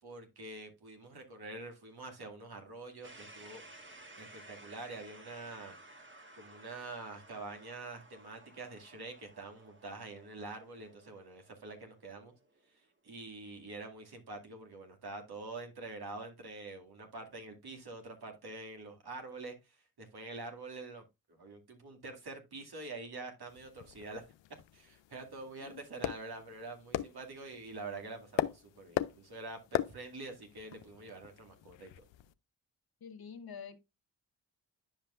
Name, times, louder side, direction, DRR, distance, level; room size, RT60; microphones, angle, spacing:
voice 1, 0.0-3.6 4.2-5.7 6.3-12.3 12.7-21.0 21.3-24.2 24.7-31.9, right 2 dB, 60° right, 2.3 m, -46 dB
sound 1, 3.0-12.9, right 2 dB, 25° right, 1.5 m, -56 dB
sound 2, 23.5-32.3, left 14 dB, 80° left, 0.5 m, -40 dB
voice 2, 33.0-33.8, left 6 dB, 55° left, 1.2 m, -47 dB
10.0 x 5.5 x 2.5 m
supercardioid pair, 45°, 43 cm